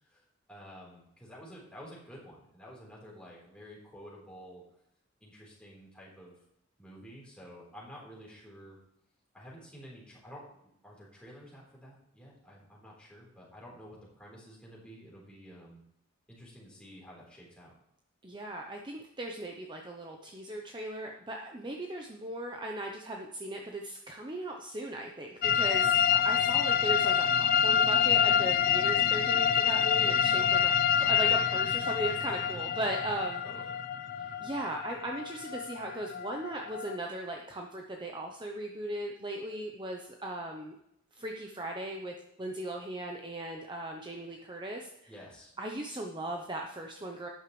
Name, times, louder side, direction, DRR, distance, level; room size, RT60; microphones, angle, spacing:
voice 1, 0.1-4.6 5.2-6.3 6.8-8.8 9.3-10.4 10.8-15.8 16.3-17.7 30.3-30.7 33.4-33.7 45.1-45.5, equal, 5° left, -5 dB, 4.0 m, -50 dB
voice 2, 18.2-26.0 26.2-30.6 31.0-33.4 34.4-40.7 41.2-42.1 42.4-44.9 45.6-47.3, right 1 dB, 20° right, 1 dB, 0.8 m, -38 dB
sound 1, 25.4-37.0, left 8 dB, 45° left, 0.5 m, -27 dB
12.0 x 10.0 x 3.3 m, 0.78 s
head